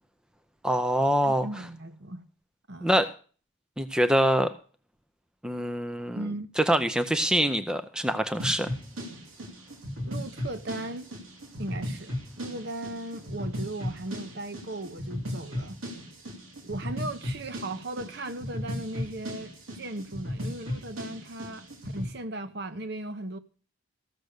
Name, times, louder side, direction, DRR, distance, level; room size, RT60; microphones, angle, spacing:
voice 1, 0.6-1.5 2.8-3.1 3.8-4.5 5.4-6.2 6.6-8.7, equal, 5° right, 0.5 m, -24 dB
voice 2, 1.2-2.2 2.7-3.0 6.1-6.5 10.0-11.1 11.6-15.8 16.6-21.7 21.9-23.4, right 1 dB, 50° right, 0.8 m, -37 dB
sound 1, 8.4-22.1, equal, 80° right, 2.5 m, -36 dB
14.5 x 6.6 x 6.5 m
head